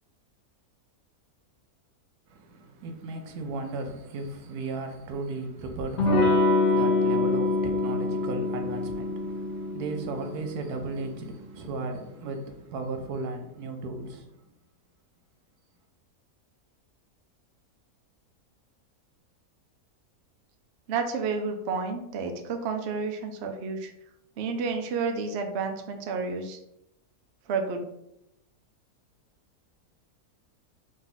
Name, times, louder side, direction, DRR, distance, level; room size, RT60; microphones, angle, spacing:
voice 1, 2.3-14.4, right 2 dB, 85° right, 1.1 m, -35 dB
Electric guitar / Strum, 6.0-11.3, left 3 dB, 45° left, 1.2 m, -26 dB
voice 2, 20.9-23.9 24.4-26.6 27.5-27.9, right 4 dB, 65° right, 0.7 m, -30 dB
3.8 x 2.6 x 3.9 m
omnidirectional pair, 1.6 m